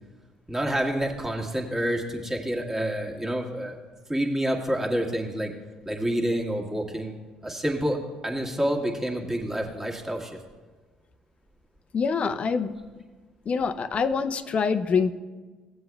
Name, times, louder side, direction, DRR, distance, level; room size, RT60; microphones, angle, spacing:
voice 1, 0.5-3.8 4.1-5.5 5.8-7.1 7.4-10.4, equal, 15° right, -1 dB, 1.6 m, -28 dB
voice 2, 11.9-12.8 13.5-15.1, left 5 dB, 45° left, 9 dB, 0.6 m, -25 dB
16.5 x 7.8 x 2.3 m, 1.4 s
hypercardioid pair, 60°, 3 cm